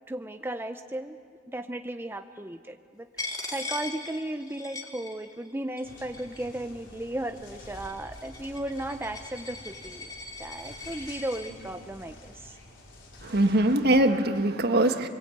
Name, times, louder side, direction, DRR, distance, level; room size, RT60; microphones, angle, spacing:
voice 1, 0.1-1.2 1.5-10.1 10.4-12.6, right 1 dB, 10° right, 7 dB, 0.7 m, -35 dB
Coin (dropping), 3.2-5.5 5.8-6.6 7.3-11.5, left 3 dB, 20° left, 2.9 m, -40 dB
sound 1, 5.8-14.0, left 1 dB, 75° left, 4.7 m, -48 dB
voice 2, 13.2-15.1, right 1 dB, 55° right, 6 dB, 1.6 m, -22 dB
29.5 x 22.5 x 8.7 m, 2.3 s
head